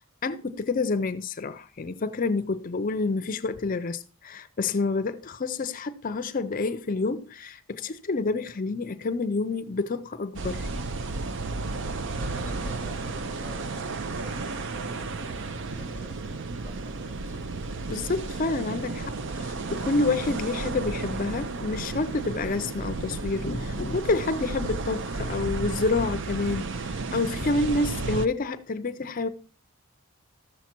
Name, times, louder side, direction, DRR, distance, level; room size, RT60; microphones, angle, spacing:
voice 1, 0.2-10.7 17.9-29.3, left 3 dB, 40° left, 0.5 m, -28 dB
sound 1, 10.4-28.3, right 3 dB, 55° right, 0.6 m, -33 dB
voice 2, 12.1-17.6, right 1 dB, 35° right, 5.9 m, -48 dB
13.5 x 7.2 x 4.4 m
head